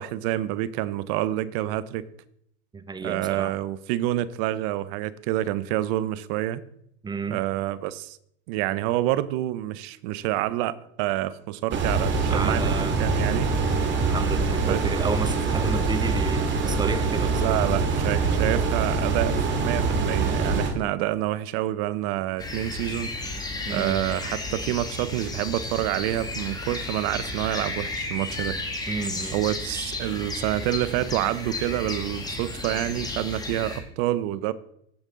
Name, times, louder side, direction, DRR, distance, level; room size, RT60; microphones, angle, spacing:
voice 1, 0.0-2.0 3.0-6.6 7.3-8.2 8.5-12.6 13.0-13.5 14.7-14.8 17.3-23.1 23.7-28.6 29.3-34.5, right 14 dB, 55° right, 0.7 m, -27 dB
voice 2, 2.7-3.6 7.0-7.4 12.3-13.0 13.8-17.6 23.7-24.0 28.9-29.4, right 4 dB, 15° right, 0.6 m, -32 dB
sound 1, 11.7-20.7, right 4 dB, 35° right, 1.9 m, -24 dB
sound 2, 22.4-33.8, left 2 dB, 10° left, 1.7 m, -33 dB
15.0 x 5.3 x 3.7 m
hypercardioid pair, 110°, 34 cm